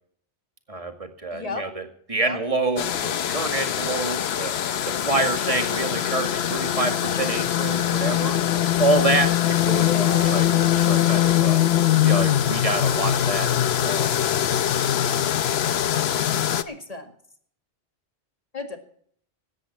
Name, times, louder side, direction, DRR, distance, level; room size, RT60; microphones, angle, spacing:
voice 1, 0.7-4.5 4.9-8.4 8.8-11.6 12.0-14.1, right 2 dB, 30° right, 5 dB, 2.1 m, -27 dB
voice 2, 1.3-1.7 2.2-2.4 9.7-10.4 16.6-17.1 18.5-18.8, left 3 dB, 35° left, 5 dB, 2.2 m, -33 dB
sound 1, 2.8-16.6, left 11 dB, 70° left, 0.9 m, -22 dB
17.0 x 13.5 x 4.3 m, 0.62 s
omnidirectional pair, 1.1 m